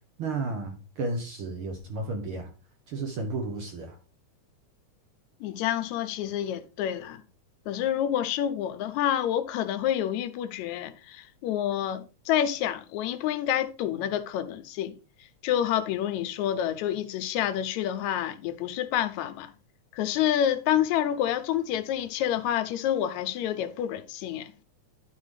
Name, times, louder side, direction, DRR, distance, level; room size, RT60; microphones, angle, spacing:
voice 1, 0.2-2.5 2.9-4.0, right 3 dB, 60° right, 1.5 m, -33 dB
voice 2, 5.4-7.2 7.7-14.9 15.4-19.5 19.9-24.6, left 10 dB, 80° left, 1.8 m, -28 dB
11.0 x 4.8 x 3.2 m
omnidirectional pair, 3.4 m